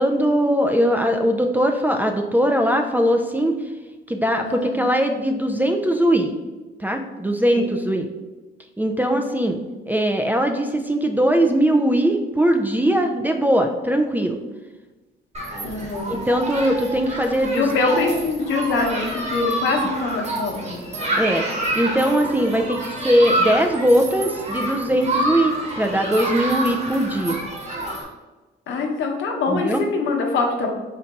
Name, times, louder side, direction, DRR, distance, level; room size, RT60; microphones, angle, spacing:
voice 1, 0.0-3.6 4.1-6.3 6.8-8.1 8.8-9.6 9.9-14.4 16.1-17.9 21.2-21.5 21.8-27.4 29.5-29.8, equal, 10° right, 4 dB, 0.3 m, -20 dB
Human group actions, 15.3-28.0, right 1 dB, 35° right, 1.0 m, -27 dB
voice 2, 15.6-16.2 17.5-20.9 28.7-30.7, left 3 dB, 75° left, 2 dB, 0.7 m, -24 dB
3.9 x 2.2 x 4.0 m, 1.2 s
cardioid pair, 90°, 20 cm